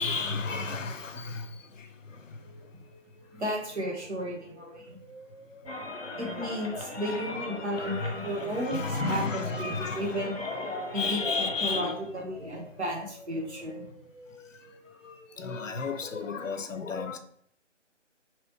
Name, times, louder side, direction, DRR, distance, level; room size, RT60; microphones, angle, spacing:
voice 1, 0.0-1.5 7.0-7.4 7.9-10.4 10.9-12.0 15.0-17.2, left 4 dB, 85° left, 0.6 m, -33 dB
sound 1, 2.4-7.6 9.8-15.6, left 1 dB, 25° left, 0.6 m, -51 dB
voice 2, 3.3-5.0 6.2-9.2 9.6-10.4 10.9-13.9, equal, 60° right, 1.2 m, -33 dB
sound 2, 5.7-11.9, left 2 dB, 55° left, 0.9 m, -37 dB
3.1 x 3.0 x 2.9 m
figure-of-eight pair, 150°, 37 cm